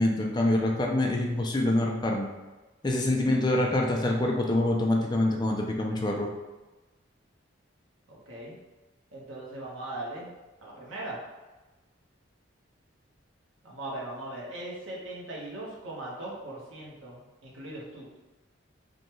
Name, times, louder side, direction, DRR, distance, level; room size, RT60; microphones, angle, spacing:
voice 1, 0.0-2.3 2.8-6.3, left 1 dB, 20° left, 0 dB, 0.4 m, -25 dB
voice 2, 8.1-8.6 9.1-10.3 10.6-11.2 13.6-18.2, right 1 dB, 90° right, -4 dB, 1.2 m, -39 dB
5.1 x 2.4 x 3.0 m, 1.1 s
head